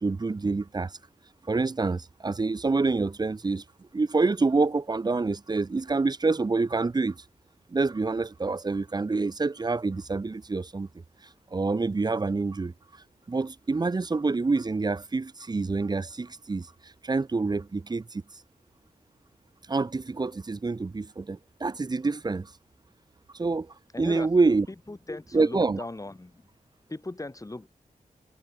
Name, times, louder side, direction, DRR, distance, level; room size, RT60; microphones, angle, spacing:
voice 1, 0.0-1.0 1.5-3.6 3.9-7.2 7.7-10.9 11.5-18.2 19.7-22.5 23.3-24.7 25.3-25.8, right 3 dB, 30° right, 0.5 m, -27 dB
voice 2, 23.9-24.3 24.9-26.5 26.9-27.7, left 2 dB, 25° left, 3.9 m, -38 dB
wide cardioid pair, 100°, 15 cm